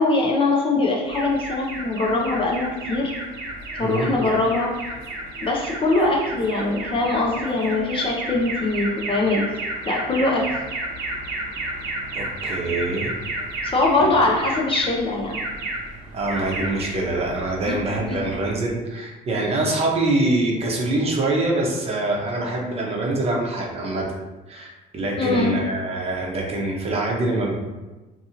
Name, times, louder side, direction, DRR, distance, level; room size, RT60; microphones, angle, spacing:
voice 1, 0.0-3.1 3.7-4.7 5.4-9.5 9.9-10.5 13.6-15.4 18.1-18.2 25.2-25.6, left 2 dB, 30° left, -1 dB, 0.5 m, -22 dB
Alarm, 1.1-18.7, right 2 dB, 80° right, 0.7 m, -32 dB
voice 2, 12.1-13.1 14.0-14.1 16.1-24.1 24.5-27.6, right 2 dB, 35° right, -2 dB, 0.7 m, -24 dB
2.6 x 2.5 x 2.8 m, 1.1 s
cardioid pair, 110°, 17 cm